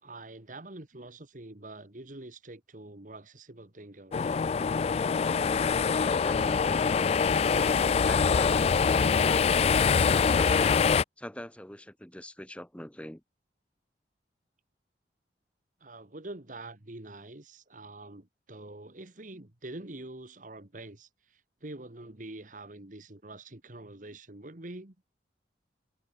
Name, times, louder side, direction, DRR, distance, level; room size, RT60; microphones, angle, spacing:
voice 1, 0.0-4.4 15.8-25.0, right 2 dB, 45° right, 1.7 m, -45 dB
sound 1, 4.1-11.0, left 5 dB, 35° left, 0.3 m, -24 dB
voice 2, 6.0-6.9 11.2-13.2, equal, 5° left, 4.7 m, -43 dB
head